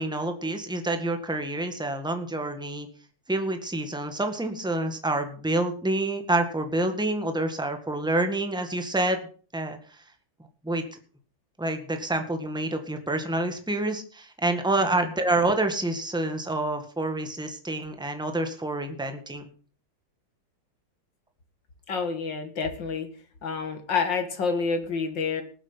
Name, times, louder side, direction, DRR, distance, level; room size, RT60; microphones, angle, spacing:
voice 1, 0.0-2.9 3.3-9.2 9.5-9.8 10.6-11.0 11.6-19.4, right 2 dB, ahead, 6 dB, 1.7 m, -27 dB
voice 2, 21.9-23.1 23.4-25.4, left 5 dB, 90° left, 7 dB, 2.8 m, -28 dB
19.0 x 8.2 x 5.7 m, 0.41 s
omnidirectional pair, 1.9 m